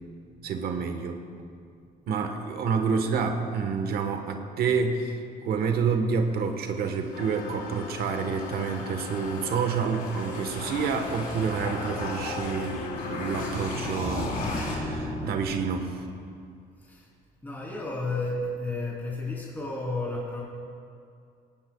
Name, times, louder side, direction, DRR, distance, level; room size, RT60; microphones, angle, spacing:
voice 1, 0.4-1.2 2.1-5.2 5.4-16.1, right 5 dB, 65° right, 5 dB, 1.3 m, -28 dB
sound 1, 6.7-16.0, left 2 dB, 55° left, 3.8 m, -36 dB
sound 2, 7.1-13.5, left 6 dB, 75° left, 1.4 m, -40 dB
voice 2, 16.8-17.1 17.4-20.4, left 2 dB, 10° left, -5 dB, 3.3 m, -32 dB
18.0 x 17.5 x 2.3 m, 2.4 s
cardioid pair, 110°, 17 cm